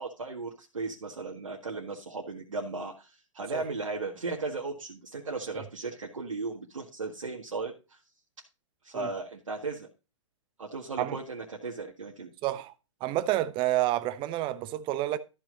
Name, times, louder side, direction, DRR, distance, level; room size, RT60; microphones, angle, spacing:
voice 1, 0.0-8.0 8.8-9.9 10.6-12.3, right 3 dB, 80° right, 1.8 m, -36 dB
voice 2, 12.4-12.7 13.0-15.2, right 14 dB, 30° right, 1.0 m, -29 dB
13.5 x 6.1 x 3.9 m
figure-of-eight pair, 110°, 16 cm